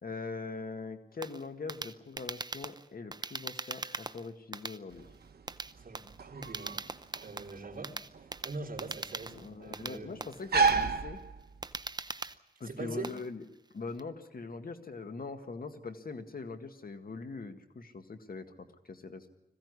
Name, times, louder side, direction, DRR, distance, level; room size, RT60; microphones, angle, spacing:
voice 1, 0.0-5.1 9.3-11.2 12.6-13.4 13.7-19.3, left 4 dB, 70° left, 7 dB, 1.9 m, -42 dB
sound 1, 1.2-14.0, right 3 dB, 25° right, 0.7 m, -41 dB
sound 2, 4.9-11.9, right 4 dB, 85° right, 1.2 m, -33 dB
voice 2, 5.7-6.7 7.2-8.0 8.4-10.1 12.6-13.2, right 3 dB, 65° right, 0 dB, 3.5 m, -42 dB
21.0 x 16.0 x 9.7 m, 0.88 s
wide cardioid pair, 80°, 16 cm